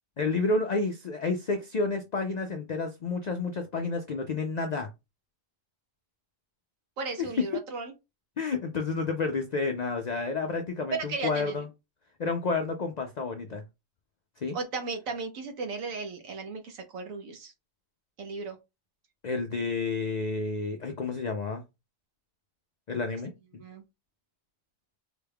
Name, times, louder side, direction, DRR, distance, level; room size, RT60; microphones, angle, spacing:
voice 1, 0.2-4.9 7.2-7.3 8.4-11.7 12.2-13.6 14.4-14.6 19.2-21.6 22.9-23.6, left 3 dB, 70° left, 0.4 m, -30 dB
voice 2, 7.0-7.9 10.9-11.5 14.5-17.5 18.2-18.6 23.6-23.8, right 4 dB, 85° right, 1.3 m, -35 dB
4.0 x 2.2 x 3.4 m
omnidirectional pair, 1.4 m